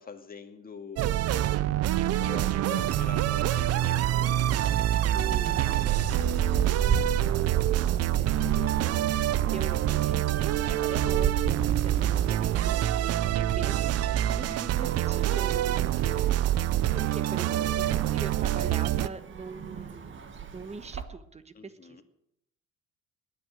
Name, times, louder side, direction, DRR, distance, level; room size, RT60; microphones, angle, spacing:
voice 1, 0.0-1.0 2.0-4.5 15.8-16.3 21.5-22.0, left 5 dB, 30° left, 6 dB, 2.1 m, -45 dB
sound 1, 1.0-19.1, right 12 dB, 55° right, 0.7 m, -26 dB
voice 2, 1.1-2.2 5.1-16.4 16.9-20.2 20.5-22.0, right 4 dB, 20° right, 12 dB, 1.3 m, -43 dB
sound 2, 5.5-21.0, right 7 dB, 40° right, 1.8 m, -34 dB
20.5 x 9.4 x 6.5 m, 0.76 s
cardioid pair, 110°, 29 cm